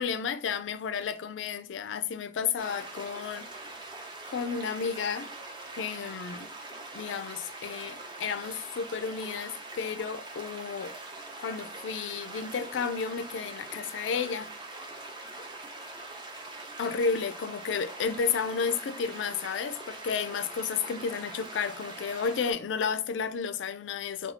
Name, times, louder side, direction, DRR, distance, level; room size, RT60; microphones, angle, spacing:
voice 1, 0.0-3.6 4.3-5.3 5.8-6.5 6.9-10.9 11.4-14.5 16.8-24.3, left 6 dB, 80° left, 0.3 m, -32 dB
sound 1, 2.6-22.5, right 2 dB, 25° right, 0.7 m, -43 dB
2.7 x 2.3 x 4.1 m
head